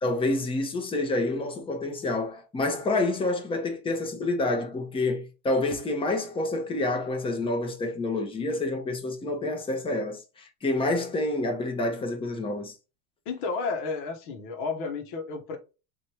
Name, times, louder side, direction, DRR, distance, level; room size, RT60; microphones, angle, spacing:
voice 1, 0.0-12.7, left 2 dB, 15° left, 0.9 m, -28 dB
voice 2, 13.2-15.6, left 4 dB, 55° left, 1.3 m, -32 dB
3.3 x 2.9 x 4.4 m
supercardioid pair, 145°, 39 cm